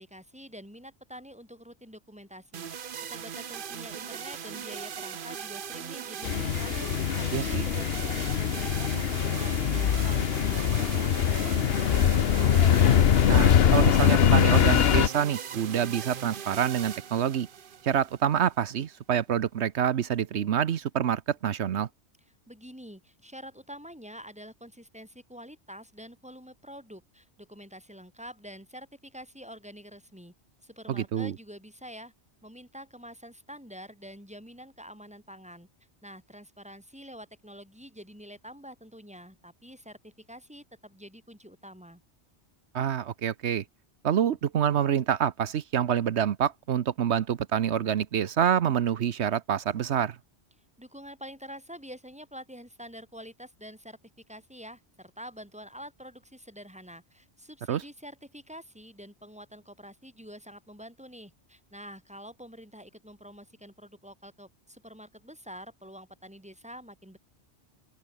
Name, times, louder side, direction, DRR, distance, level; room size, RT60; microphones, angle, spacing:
voice 1, 0.0-2.7 3.1-6.8 7.1-12.5 22.5-30.3 30.6-32.1 32.4-35.7 36.0-42.0 50.8-54.0 54.3-67.2, equal, 5° right, 6.6 m, -47 dB
sound 1, 2.5-18.6, right 8 dB, 55° right, 0.9 m, -39 dB
sound 2, 6.2-15.1, left 9 dB, 65° left, 1.0 m, -23 dB
voice 2, 7.3-7.6 13.3-17.5 17.8-21.9 30.9-31.3 42.7-43.6 44.0-50.2 57.7-57.8, right 9 dB, 80° right, 1.1 m, -27 dB
open air
omnidirectional pair, 1.1 m